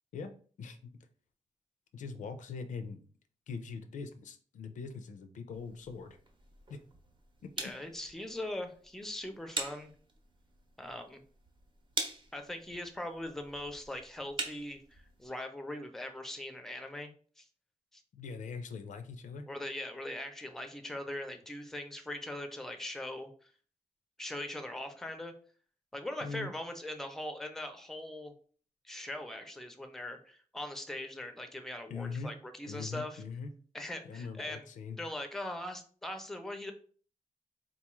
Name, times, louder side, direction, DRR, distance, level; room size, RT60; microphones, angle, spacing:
voice 1, 0.6-0.9 1.9-3.0 3.5-6.2 6.7-6.8 7.4-7.5 18.1-19.5 26.2-26.5 31.9-32.3 32.7-33.5 34.0-35.0, left 5 dB, 90° left, 8 dB, 0.4 m, -42 dB
sound 1, 5.5-15.3, right 2 dB, 40° right, 0.7 m, -44 dB
voice 2, 7.6-9.9 10.8-11.2 12.3-17.5 17.9-18.0 19.5-23.5 24.2-25.3 25.9-28.3 28.8-33.2 33.7-34.7 35.0-36.7, left 1 dB, 5° left, 6 dB, 0.5 m, -41 dB
3.9 x 2.3 x 3.0 m, 0.44 s
wide cardioid pair, 115°, 13 cm